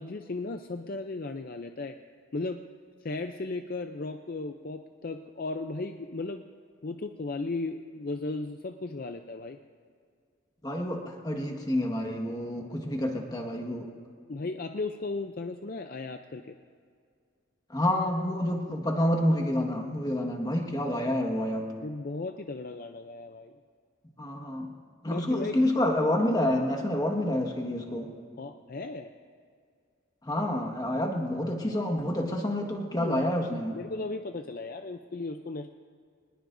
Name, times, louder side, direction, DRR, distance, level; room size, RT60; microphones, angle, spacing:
voice 1, 0.0-2.0 2.3-2.6 3.0-6.4 6.8-9.6 14.3-16.6 21.8-23.5 25.1-25.6 28.4-29.1 32.9-33.2 33.7-35.7, left 3 dB, 45° left, 7 dB, 0.5 m, -36 dB
voice 2, 10.6-13.9 17.7-21.7 24.2-24.7 25.0-28.1 30.2-33.8, left 1 dB, 20° left, 2 dB, 1.5 m, -28 dB
24.5 x 20.5 x 2.6 m, 2.1 s
head